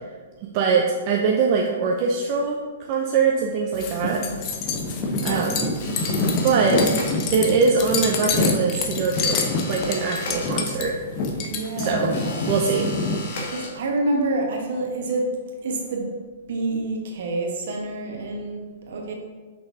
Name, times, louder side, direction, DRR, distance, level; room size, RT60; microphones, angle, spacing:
voice 1, 0.4-2.6 2.9-4.2 5.2-5.7 6.4-6.9 7.3-9.4 9.6-11.0 11.8-12.1 12.5-12.9, right 5 dB, 40° right, -1 dB, 0.6 m, -22 dB
sound 1, 3.7-13.2, left 3 dB, 35° left, 0.8 m, -26 dB
sound 2, 3.7-11.5, right 3 dB, 85° right, 0.5 m, -41 dB
voice 2, 4.1-4.5 5.0-5.5 11.5-12.5 13.5-15.3 15.6-16.1 16.5-19.1, right 2 dB, 65° right, 0 dB, 1.3 m, -28 dB
sound 3, 5.8-7.6 9.1-11.0 12.1-14.1, left 3 dB, 55° left, 1.3 m, -37 dB
6.2 x 5.5 x 2.8 m, 1.4 s
hypercardioid pair, 125°, 0 cm